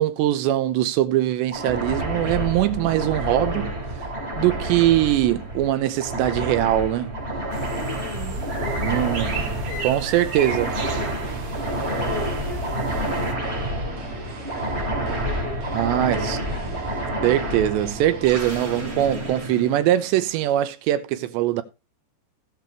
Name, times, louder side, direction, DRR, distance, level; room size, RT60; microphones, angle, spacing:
voice 1, 0.0-3.7 4.4-7.2 8.8-9.5 9.8-10.7 15.7-16.4 17.2-21.6, right 13 dB, 85° right, 3.0 m, -22 dB
sound 1, 1.5-20.4, right 1 dB, 15° right, 2.4 m, -29 dB
sound 2, 7.5-13.3, right 5 dB, 55° right, 3.4 m, -34 dB
voice 2, 7.7-11.3 11.6-17.6, left 3 dB, 90° left, 7.6 m, -39 dB
sound 3, 10.2-18.9, right 3 dB, 40° right, 2.6 m, -39 dB
18.0 x 6.8 x 3.1 m
omnidirectional pair, 5.1 m